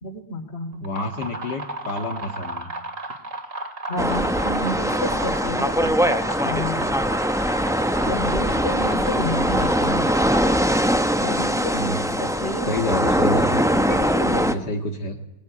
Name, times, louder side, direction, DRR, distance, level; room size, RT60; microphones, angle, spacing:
voice 1, 0.0-0.8 3.9-6.9 8.0-10.1 11.2-12.7 13.9-14.7, left 1 dB, 35° left, 7 dB, 3.2 m, -30 dB
sound 1, 0.7-11.1, right 2 dB, 45° right, 3.0 m, -35 dB
voice 2, 0.8-2.7 11.7-12.1 12.7-13.7 14.5-15.2, left 2 dB, 65° left, 2 dB, 2.4 m, -28 dB
sound 2, 4.0-14.5, equal, 5° right, 0.7 m, -22 dB
21.5 x 21.5 x 9.8 m, 0.88 s
omnidirectional pair, 2.0 m